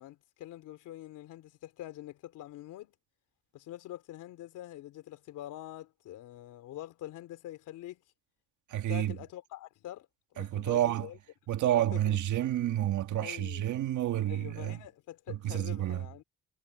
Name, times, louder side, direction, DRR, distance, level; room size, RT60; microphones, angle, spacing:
voice 1, 0.0-2.9 3.5-8.0 8.9-11.2 11.7-12.2 13.2-13.7 14.3-16.2, left 14 dB, 90° left, 3.6 m, -45 dB
voice 2, 8.7-9.2 10.4-11.1 11.5-14.8 15.3-16.1, right 12 dB, 75° right, 1.8 m, -29 dB
cardioid pair, 90°, 30 cm